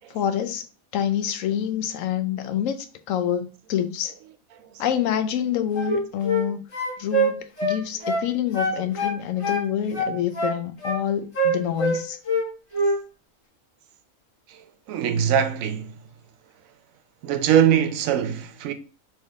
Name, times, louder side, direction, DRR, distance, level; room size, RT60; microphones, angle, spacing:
voice 1, 0.1-0.6 0.9-4.1 4.8-6.6 7.0-12.2, left 9 dB, 75° left, 0.9 m, -26 dB
sound 1, 5.7-6.5 6.7-8.3 8.5-9.7 9.9-11.0 11.3-12.5 12.7-13.0, right 1 dB, 40° left, 1.5 m, -24 dB
voice 2, 14.5-16.0 17.2-18.7, right 9 dB, 80° right, 1.0 m, -22 dB
3.3 x 3.1 x 3.5 m
omnidirectional pair, 1.4 m